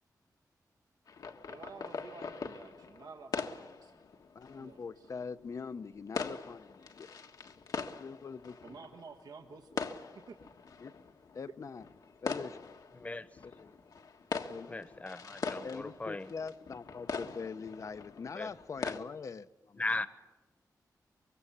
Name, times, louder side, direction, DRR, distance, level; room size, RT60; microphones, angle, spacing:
sound 1, 1.1-19.0, left 5 dB, 75° left, 1.5 m, -42 dB
voice 1, 1.5-4.0 4.5-5.1 8.6-9.9 10.3-10.4, right 4 dB, 85° right, 3 dB, 1.5 m, -51 dB
voice 2, 4.3-7.1 8.0-8.8 10.8-10.9 11.3-11.8 12.2-12.8 13.4-13.7 14.5-14.9 15.6-19.8, left 5 dB, 55° left, 12 dB, 0.8 m, -43 dB
voice 3, 12.9-13.3 14.7-16.3 18.3-18.5 18.8-18.9 19.8-20.1, left 2 dB, 20° left, 13 dB, 1.1 m, -37 dB
25.0 x 23.0 x 8.6 m, 1.1 s
wide cardioid pair, 155°, 7 cm